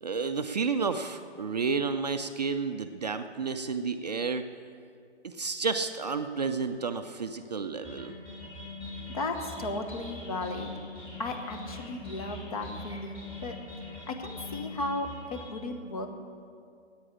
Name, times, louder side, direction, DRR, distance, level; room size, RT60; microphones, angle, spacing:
voice 1, 0.0-4.5 5.2-8.1, right 5 dB, 40° right, 7 dB, 0.5 m, -31 dB
sound 1, 7.8-15.5, left 2 dB, 15° left, 2.6 m, -42 dB
voice 2, 9.1-10.7 11.2-13.5 14.1-16.1, left 2 dB, 35° left, 5 dB, 1.2 m, -35 dB
9.7 x 8.9 x 9.9 m, 2.3 s
figure-of-eight pair, 150°, 33 cm